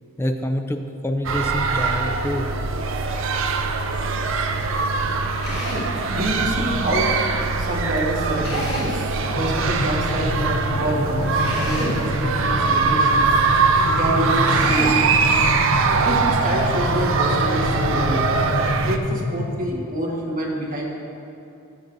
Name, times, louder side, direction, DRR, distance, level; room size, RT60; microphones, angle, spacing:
voice 1, 0.2-2.5, left 1 dB, 10° left, 5 dB, 0.4 m, -26 dB
sound 1, 1.2-19.0, right 4 dB, 65° right, 0.5 m, -22 dB
Drill, 5.4-6.0 8.4-9.1 11.4-12.1 14.4-15.1, left 1 dB, 55° left, 2.3 m, -30 dB
voice 2, 6.0-13.3 13.8-15.1 15.7-18.3 18.8-20.8, right 1 dB, 40° right, -3 dB, 1.5 m, -26 dB
sound 2, 9.3-19.7, left 1 dB, 75° left, 0.7 m, -28 dB
16.0 x 7.3 x 2.7 m, 2.7 s
head